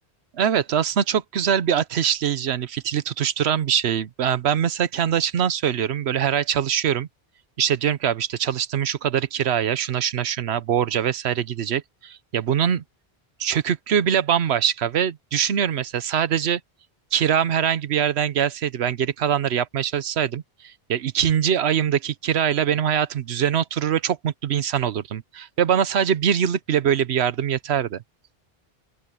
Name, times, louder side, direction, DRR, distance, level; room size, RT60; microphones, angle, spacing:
voice 1, 0.3-7.1 7.6-12.8 13.4-16.6 17.1-28.0, right 9 dB, 90° right, 1.1 m, -23 dB
open air
omnidirectional pair, 1.1 m